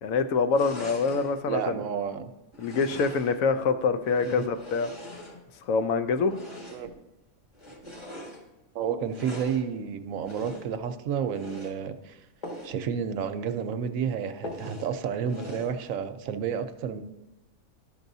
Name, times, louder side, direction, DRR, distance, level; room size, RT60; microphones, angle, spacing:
voice 1, 0.0-1.8 2.6-4.9 5.7-6.4, left 4 dB, 75° left, 10 dB, 1.0 m, -25 dB
sound 1, 0.5-1.4 2.5-3.5 4.0-5.7 6.3-7.0 7.5-8.4 9.1-9.7 10.2-10.8 11.3-11.8 12.4-12.8 13.2-13.3 13.6-13.7 14.4-14.9 15.3-15.8, left 1 dB, 20° left, 1.6 m, -42 dB
voice 2, 1.5-2.3 4.2-4.5 6.7-6.9 8.7-12.2 12.6-17.0, right 7 dB, 75° right, 9 dB, 1.0 m, -31 dB
13.0 x 6.0 x 2.6 m, 1.0 s
omnidirectional pair, 1.5 m